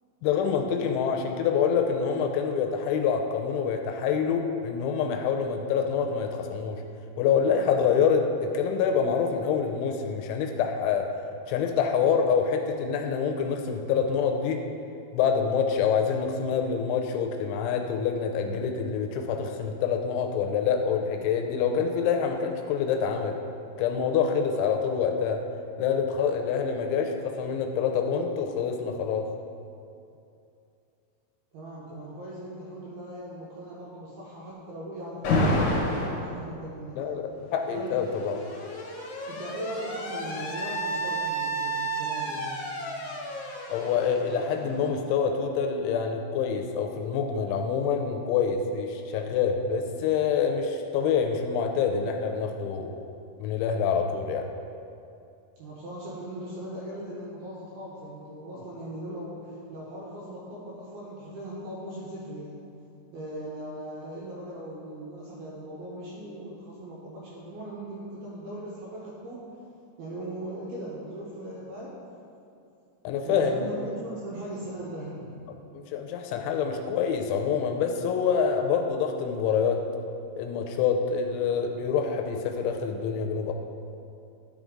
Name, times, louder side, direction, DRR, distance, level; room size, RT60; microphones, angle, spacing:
voice 1, 0.2-6.8 7.2-11.1 11.5-14.6 15.1-23.4 23.8-25.4 25.8-29.3 37.0-38.4 43.7-53.0 53.4-54.5 73.0-73.7 75.7-79.8 80.4-83.5, left 6 dB, 85° left, 4 dB, 2.9 m, -26 dB
voice 2, 31.5-37.2 37.7-38.0 39.3-43.2 55.6-62.7 63.1-69.6 70.0-71.9 73.3-75.5, right 1 dB, 75° right, -6 dB, 2.3 m, -39 dB
Alarm, 35.2-36.2 37.4-45.1, equal, 65° left, 2.2 m, -30 dB
11.5 x 5.0 x 3.6 m, 2.6 s
omnidirectional pair, 5.6 m